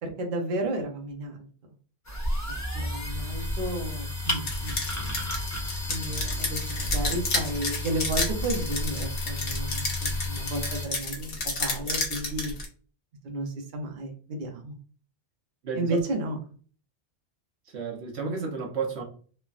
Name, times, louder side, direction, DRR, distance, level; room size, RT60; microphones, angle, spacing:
voice 1, 0.0-1.5 2.5-5.2 5.9-12.5 13.2-14.8 15.7-16.4, right 1 dB, 55° right, 0.7 m, -33 dB
sound 1, 2.0-10.9, left 1 dB, 25° left, 0.4 m, -32 dB
sound 2, 4.5-12.7, left 3 dB, 75° left, 1.1 m, -31 dB
voice 2, 15.6-16.0 17.7-19.0, right 5 dB, 70° right, 1.0 m, -32 dB
3.1 x 2.1 x 2.3 m
omnidirectional pair, 1.1 m